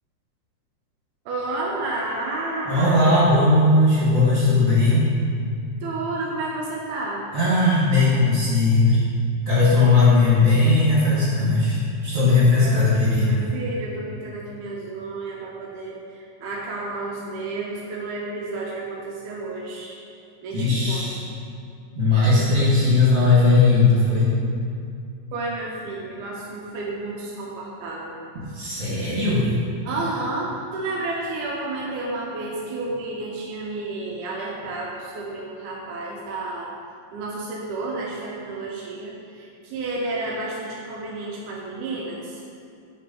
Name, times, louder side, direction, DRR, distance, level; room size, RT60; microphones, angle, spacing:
voice 1, 1.3-3.2 5.8-7.2 12.5-12.8 13.2-20.0 20.4-21.1 25.3-28.2 28.5-29.2 29.8-36.7 37.1-42.4, right 2 dB, 90° right, -4 dB, 2.3 m, -31 dB
voice 2, 2.6-5.0 7.3-9.0 9.4-13.3 20.5-21.3 21.9-24.3 28.5-29.5, left 3 dB, 35° right, -9 dB, 1.5 m, -18 dB
7.5 x 3.3 x 5.2 m, 2.4 s
omnidirectional pair, 3.5 m